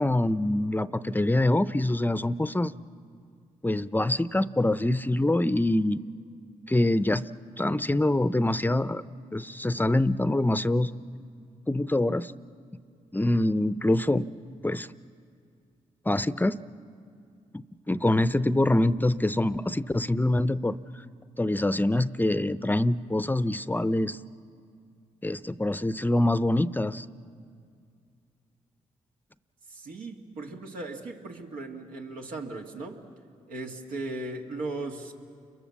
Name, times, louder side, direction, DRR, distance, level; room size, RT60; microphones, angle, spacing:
voice 1, 0.0-2.7 3.6-6.0 6.7-7.3 7.6-9.0 9.3-10.9 11.7-12.3 13.1-14.3 14.6-14.9 16.1-16.6 17.5-20.8 21.4-24.2 25.2-27.1, left 1 dB, 15° left, 15 dB, 0.6 m, -25 dB
voice 2, 29.7-33.0 33.5-35.1, right 2 dB, 85° right, 0 dB, 2.2 m, -37 dB
29.5 x 23.0 x 7.2 m, 2.2 s
supercardioid pair, 60°, 14 cm